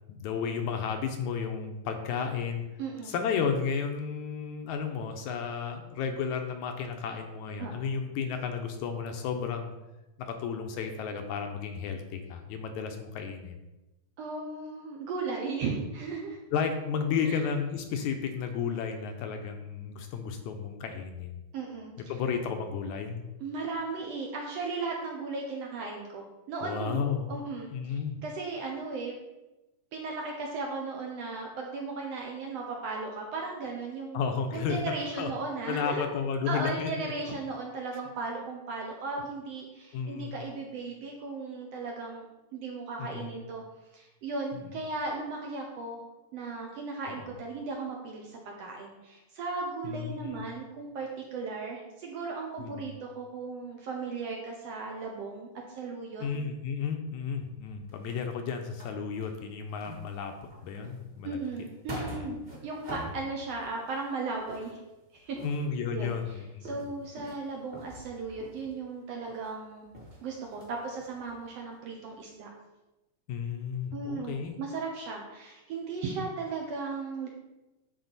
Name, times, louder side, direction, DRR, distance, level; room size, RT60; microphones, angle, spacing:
voice 1, 0.1-2.7 3.0-9.7 10.2-13.6 16.5-21.4 22.1-23.2 26.6-27.3 27.7-28.2 34.1-34.8 35.2-35.3 35.7-37.1 39.9-40.4 43.0-43.3 44.5-44.6 47.1-47.2 49.8-50.4 52.6-52.9 56.2-60.4 60.6-61.4 62.2-62.3 65.4-66.7 73.3-74.5, left 6 dB, 75° left, 5 dB, 1.9 m, -33 dB
voice 2, 2.8-3.2 7.6-7.9 14.2-16.4 17.2-17.4 21.5-21.9 23.4-27.0 27.3-27.7 28.2-29.2 29.9-34.2 34.5-36.0 36.5-42.3 42.5-43.6 43.9-46.0 46.3-56.2 61.2-62.4 62.6-64.8 65.1-65.4 65.9-69.9 70.2-72.5 73.9-77.3, right 3 dB, 70° right, 0 dB, 1.7 m, -36 dB
sound 1, 57.4-59.5 59.8-64.0 64.3-68.9 69.2-69.5 69.9-71.4 71.7-71.8 72.2-72.3, equal, 20° right, 1.3 m, -45 dB
10.5 x 4.3 x 4.0 m, 1.0 s
omnidirectional pair, 3.7 m